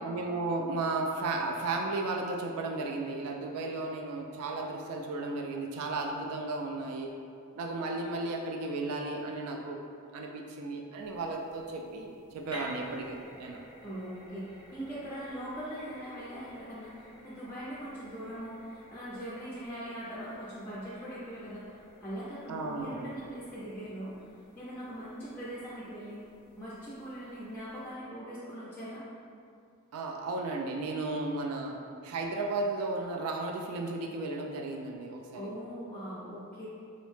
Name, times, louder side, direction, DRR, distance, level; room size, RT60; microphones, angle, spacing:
voice 1, 0.0-7.1 7.5-9.8 10.1-13.6 22.5-23.1 29.9-35.5, right 2 dB, 75° right, 2 dB, 0.3 m, -34 dB
sound 1, 11.0-27.9, equal, 20° right, 0.8 m, -53 dB
voice 2, 13.8-21.7 22.0-24.1 24.6-26.2 26.6-29.0 35.3-36.7, equal, 10° left, -10 dB, 0.4 m, -41 dB
3.7 x 2.1 x 3.1 m, 2.4 s
head